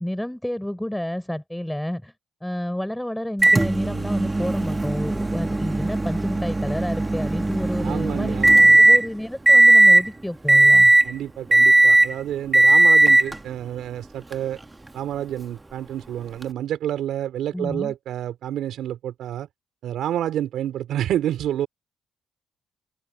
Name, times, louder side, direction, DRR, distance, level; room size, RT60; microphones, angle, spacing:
voice 1, 0.0-2.1 2.4-8.4 8.8-10.9 17.5-17.9, left 1 dB, 5° left, 5.8 m, -30 dB
Microwave oven, 3.4-9.1 9.5-10.1 10.5-11.1 11.5-12.1 12.5-13.4 14.3-14.4 16.4-16.5, right 2 dB, 15° right, 1.3 m, -16 dB
voice 2, 7.8-8.8 11.0-14.6 14.9-19.5 19.8-21.7, right 11 dB, 75° right, 4.5 m, -29 dB
cardioid pair, 90°, 0 cm